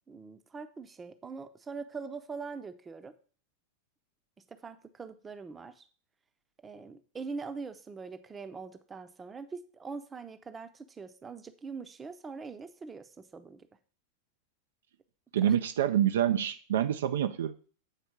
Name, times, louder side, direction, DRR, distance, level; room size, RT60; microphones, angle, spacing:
voice 1, 0.1-3.1 4.6-5.8 6.6-13.7 15.5-15.6, right 4 dB, 15° right, 0.7 m, -43 dB
voice 2, 15.3-17.5, right 10 dB, 60° right, 0.4 m, -27 dB
8.1 x 4.3 x 6.0 m
figure-of-eight pair, 90°, 0 cm